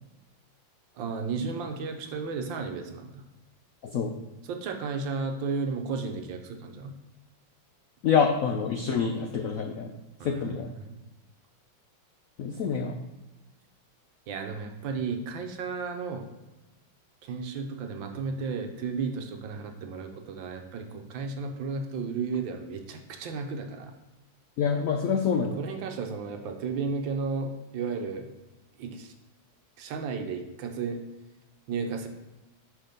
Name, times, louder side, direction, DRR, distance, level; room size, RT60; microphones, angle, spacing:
voice 1, 0.9-3.2 4.4-6.9 10.2-11.0 14.3-16.3 17.2-23.9 25.5-28.3 28.8-29.1 29.8-31.0 31.7-32.1, right 4 dB, 75° right, 5 dB, 1.5 m, -33 dB
voice 2, 8.0-9.9 10.2-10.7 12.4-13.0 24.6-25.6, left 6 dB, 80° left, 4 dB, 0.7 m, -26 dB
6.1 x 5.1 x 5.2 m, 1.0 s
omnidirectional pair, 2.2 m